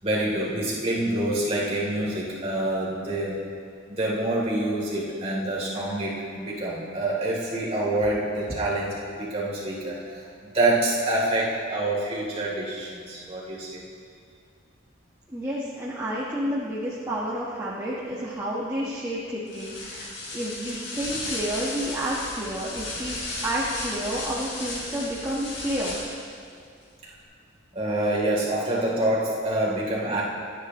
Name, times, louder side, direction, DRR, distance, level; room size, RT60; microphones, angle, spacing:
voice 1, 0.0-3.4 3.9-13.8 27.7-30.2, right 1 dB, 30° right, -6 dB, 3.5 m, -26 dB
voice 2, 15.3-26.0, right 1 dB, 15° right, -8 dB, 1.6 m, -30 dB
sound 1, 19.5-26.3, left 2 dB, 70° left, 4.0 m, -34 dB
26.0 x 10.5 x 3.2 m, 2.3 s
head